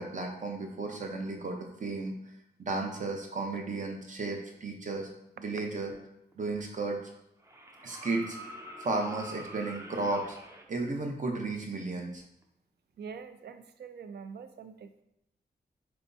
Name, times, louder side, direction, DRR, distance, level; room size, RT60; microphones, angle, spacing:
voice 1, 0.0-2.1 2.6-5.1 5.4-5.9 6.4-7.0 7.8-8.4 8.8-10.4 10.7-12.2, right 3 dB, 45° right, 2 dB, 0.8 m, -34 dB
sound 1, 6.3-6.4 7.4-10.6 12.4-12.5, right 1 dB, 15° right, 0.5 m, -46 dB
voice 2, 13.0-15.0, right 6 dB, 65° right, 10 dB, 0.4 m, -45 dB
4.4 x 3.4 x 2.6 m, 0.79 s
wide cardioid pair, 90°, 18 cm